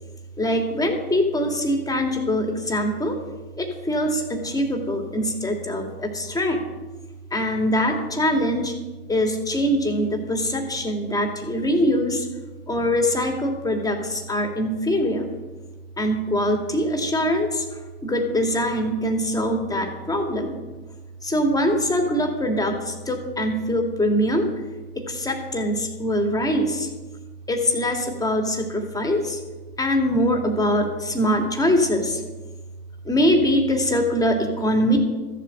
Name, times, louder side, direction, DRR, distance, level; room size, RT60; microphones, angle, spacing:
voice 1, 0.4-3.2 3.6-6.6 7.3-8.7 9.1-12.3 12.7-15.3 16.0-20.6 21.2-24.5 25.0-26.9 27.5-29.4 29.8-32.2 33.0-35.0, equal, 10° left, 3 dB, 2.6 m, -23 dB
14.0 x 7.6 x 7.9 m, 1.2 s
hypercardioid pair, 110°, 31 cm